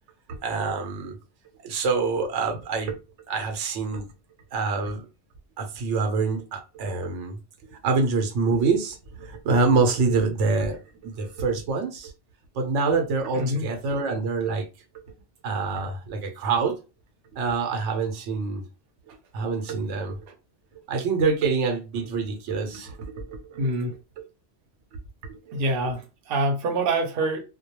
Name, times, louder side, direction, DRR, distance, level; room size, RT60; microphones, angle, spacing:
voice 1, 0.3-1.2 1.6-3.0 3.3-4.1 4.5-5.1 5.6-7.4 7.8-12.1 12.5-14.7 15.4-16.8 17.3-18.6 19.3-20.2 20.9-23.7 24.2-24.3 25.2-25.6 26.9-27.0, right 4 dB, 90° right, 0.9 m, -26 dB
voice 2, 13.3-13.7 19.7-19.8 23.6-23.9 25.5-27.4, right 1 dB, 60° right, 0.8 m, -26 dB
2.3 x 2.1 x 2.9 m
omnidirectional pair, 1.2 m